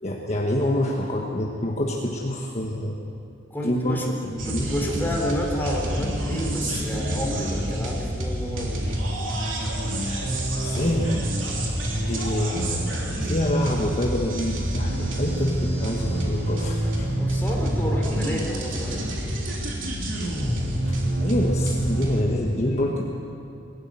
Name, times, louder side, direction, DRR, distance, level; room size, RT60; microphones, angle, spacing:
voice 1, 0.0-3.0 3.6-4.7 9.7-9.8 10.5-11.3 12.1-17.1 20.8-23.0, left 1 dB, 35° left, -1 dB, 1.4 m, -27 dB
voice 2, 3.5-4.2 4.5-9.0 17.2-19.1, equal, 10° left, -1 dB, 3.4 m, -30 dB
sound 1, 4.4-22.2, right 1 dB, 75° right, 3.4 m, -27 dB
21.0 x 14.0 x 9.1 m, 2.6 s
head